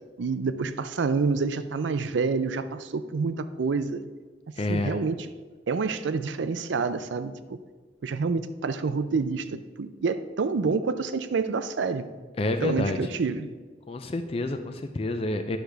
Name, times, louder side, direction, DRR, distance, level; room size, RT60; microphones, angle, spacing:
voice 1, 0.2-4.0 4.7-5.3 5.7-7.6 8.0-12.0 12.6-13.5, right 4 dB, 80° right, 12 dB, 0.5 m, -28 dB
voice 2, 4.6-5.0 12.4-13.0 13.9-15.6, left 2 dB, 30° left, 7 dB, 0.4 m, -28 dB
10.0 x 6.4 x 3.4 m, 1.4 s
head